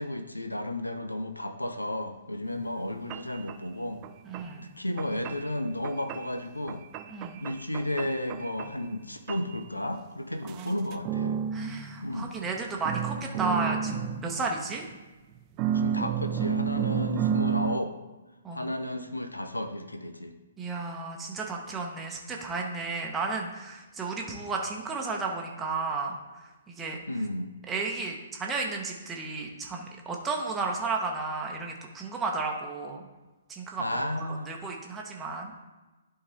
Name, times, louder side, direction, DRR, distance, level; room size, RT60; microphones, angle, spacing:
voice 1, 0.0-4.0 4.6-6.8 7.4-11.4 12.0-12.3 15.7-17.9 18.5-20.3 27.1-27.5 33.8-34.6, left 1 dB, 85° left, 8 dB, 0.6 m, -33 dB
sound 1, 2.6-2.7 3.1-3.6 4.0-4.5 5.0-5.5 5.8-6.4 6.7-9.0 9.3-9.6 10.5-12.6 12.8-15.0 15.6-17.8, right 8 dB, 30° right, 0.4 m, -31 dB
voice 2, 4.2-4.7 7.1-7.4 10.5-10.9 11.5-14.8 18.4-18.7 20.6-27.0 27.7-33.1 33.5-35.5, right 3 dB, 15° right, 0 dB, 0.9 m, -33 dB
11.0 x 3.9 x 4.0 m, 1.1 s
figure-of-eight pair, 125°, 0 cm